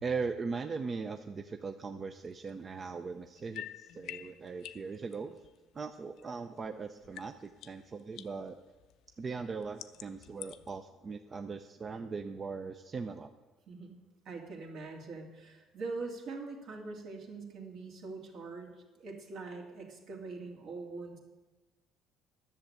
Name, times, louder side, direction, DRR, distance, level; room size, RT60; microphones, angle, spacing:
voice 1, 0.0-5.4 5.7-8.6 9.2-13.3, right 4 dB, 30° right, 7 dB, 0.5 m, -39 dB
sound 1, 2.3-6.7 7.0-10.7, left 12 dB, 70° left, 0.5 m, -50 dB
voice 2, 13.7-14.0 14.2-18.7 19.0-21.2, right 3 dB, 60° right, 2 dB, 2.4 m, -43 dB
11.0 x 7.0 x 8.6 m, 1.2 s
cardioid pair, 130°, 0 cm